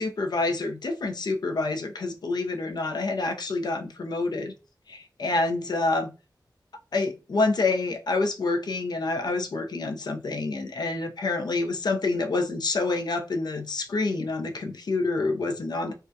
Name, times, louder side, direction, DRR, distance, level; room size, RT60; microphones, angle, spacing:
voice 1, 0.0-4.5 4.9-6.1 6.9-15.9, left 3 dB, 70° left, 0.4 m, -27 dB
2.2 x 2.1 x 2.5 m
wide cardioid pair, 95°, 7 cm